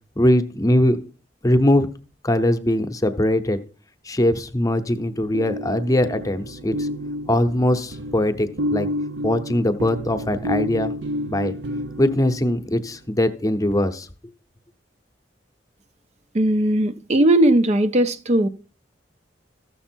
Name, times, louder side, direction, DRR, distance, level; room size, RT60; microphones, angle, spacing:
voice 1, 0.2-1.0 1.4-1.9 2.2-3.6 4.1-6.9 7.3-8.9 9.2-10.9 11.3-11.5 12.0-14.1, left 1 dB, 20° left, 0.8 m, -21 dB
sound 1, 5.0-12.9, equal, 80° right, 0.7 m, -30 dB
voice 2, 16.3-18.5, right 1 dB, 35° right, 0.5 m, -18 dB
13.5 x 6.9 x 4.4 m
head